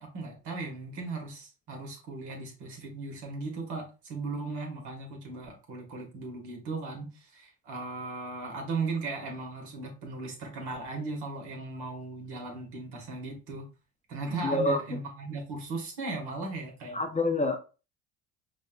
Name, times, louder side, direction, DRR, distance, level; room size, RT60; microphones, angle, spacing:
voice 1, 0.0-13.7 14.1-17.0, right 3 dB, 65° right, 1.7 m, -37 dB
voice 2, 14.4-14.8 16.9-17.6, left 2 dB, 15° left, 0.5 m, -26 dB
5.1 x 2.6 x 2.3 m
hypercardioid pair, 65°, 43 cm